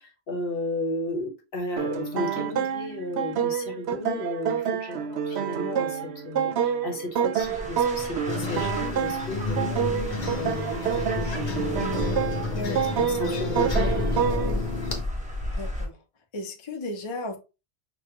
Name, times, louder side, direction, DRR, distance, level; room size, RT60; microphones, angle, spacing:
voice 1, 0.0-5.0 5.2-14.6, left 2 dB, 65° left, 1.2 m, -34 dB
sound 1, 1.8-14.6, right 8 dB, 90° right, 0.9 m, -28 dB
sound 2, 7.4-15.9, left 1 dB, 5° right, 0.9 m, -33 dB
sound 3, 8.3-15.0, left 3 dB, 50° left, 0.9 m, -31 dB
voice 2, 12.5-12.8 14.4-14.7 15.6-16.0 16.3-17.4, left 2 dB, 35° left, 0.6 m, -35 dB
5.3 x 2.2 x 2.9 m
omnidirectional pair, 1.1 m